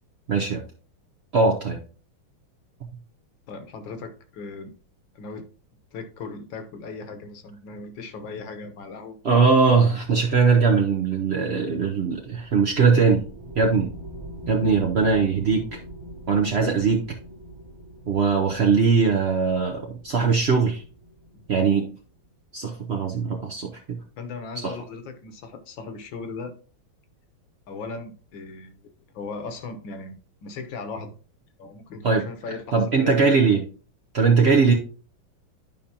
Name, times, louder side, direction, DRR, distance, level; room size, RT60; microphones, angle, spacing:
voice 1, 0.3-0.6 1.3-1.8 9.2-13.2 13.6-13.9 14.5-15.8 16.3-17.0 18.1-20.8 21.5-21.9 22.5-24.0 24.6-24.7 32.0-32.2 32.7-33.6 34.1-34.7, right 5 dB, 85° right, 1 dB, 0.5 m, -20 dB
voice 2, 3.5-4.7 5.1-5.5 5.9-9.2 21.3-21.4 24.2-26.5 27.7-28.8 29.1-30.1 30.4-31.1 31.6-33.4, left 4 dB, 70° left, 8 dB, 1.6 m, -37 dB
sound 1, 12.1-22.1, equal, 20° right, 1.0 m, -43 dB
11.0 x 5.2 x 2.8 m, 0.38 s
omnidirectional pair, 2.3 m